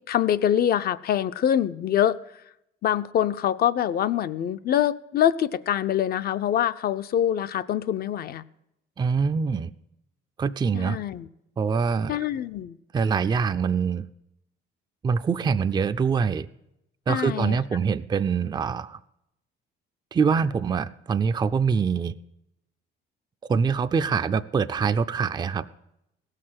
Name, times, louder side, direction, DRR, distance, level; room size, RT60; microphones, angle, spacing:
voice 1, 0.1-2.2 2.8-8.4 10.7-11.3 12.1-12.8 17.1-17.6, left 10 dB, 50° left, 13 dB, 0.6 m, -24 dB
voice 2, 9.0-9.7 10.4-11.0 11.6-12.2 12.9-14.0 15.0-16.5 17.1-19.0 20.1-22.1 23.5-25.7, right 6 dB, 20° right, 11 dB, 0.4 m, -24 dB
17.0 x 6.6 x 7.6 m, 0.84 s
cardioid pair, 100°, 20 cm